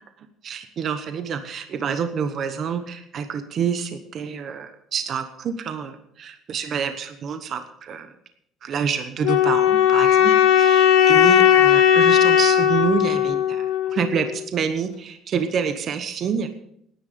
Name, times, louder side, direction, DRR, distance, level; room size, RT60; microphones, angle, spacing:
voice 1, 0.2-8.1 8.6-16.6, right 7 dB, 35° right, 8 dB, 1.1 m, -28 dB
sound 1, 9.2-14.3, left 10 dB, 85° left, 1.9 m, -17 dB
18.0 x 10.5 x 5.2 m, 0.72 s
cardioid pair, 165°, 0 cm